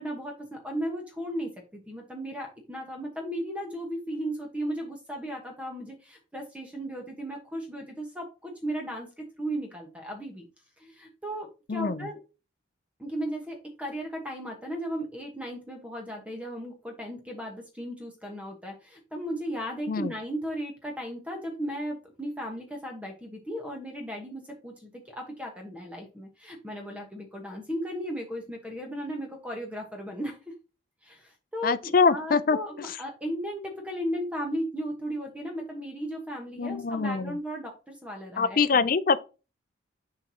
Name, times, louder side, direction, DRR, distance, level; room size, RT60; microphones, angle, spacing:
voice 1, 0.0-10.4 10.8-12.2 13.0-30.4 31.0-38.9, equal, 5° right, 1.2 m, -36 dB
voice 2, 11.7-12.1 19.9-20.1 31.6-32.6 36.6-37.4 38.4-39.2, left 5 dB, 45° left, 0.5 m, -24 dB
6.6 x 5.9 x 2.8 m
head